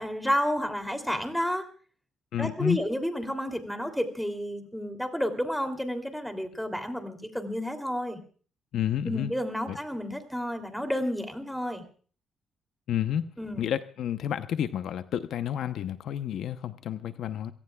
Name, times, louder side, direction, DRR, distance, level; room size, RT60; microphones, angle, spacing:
voice 1, 0.0-1.6 2.4-8.2 9.0-11.8 13.4-13.7, equal, ahead, 6 dB, 2.9 m, -31 dB
voice 2, 2.3-2.8 8.7-9.3 9.7-9.8 12.9-17.5, left 10 dB, 75° left, 10 dB, 0.8 m, -30 dB
28.0 x 17.5 x 2.4 m, 0.41 s
cardioid pair, 90°, 0 cm